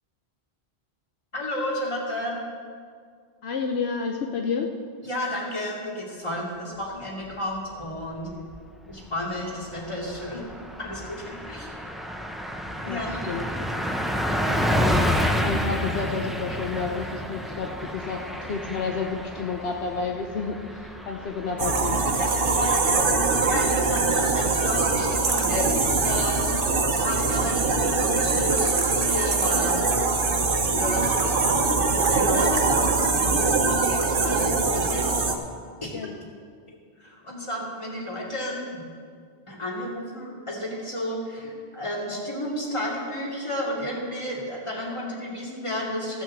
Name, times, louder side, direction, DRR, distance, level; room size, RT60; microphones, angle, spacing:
voice 1, 1.3-2.4 5.0-8.3 8.9-10.4 10.8-11.9 12.8-13.3 22.2-26.5 27.0-29.9 30.5-35.4 35.8-35.9 37.0-38.8 39.5-46.2, left 1 dB, 30° left, -4 dB, 2.7 m, -32 dB
voice 2, 3.4-4.7 12.9-13.4 15.4-22.1 32.3-32.5 35.9-36.2, left 5 dB, 80° left, 3 dB, 1.0 m, -30 dB
Car passing by, 8.1-8.7 9.0-9.2 9.5-23.7, equal, ahead, 0.5 m, -30 dB
sound 1, 21.6-35.3, right 4 dB, 60° right, 1.1 m, -23 dB
15.5 x 6.2 x 7.3 m, 2.1 s
omnidirectional pair, 1.1 m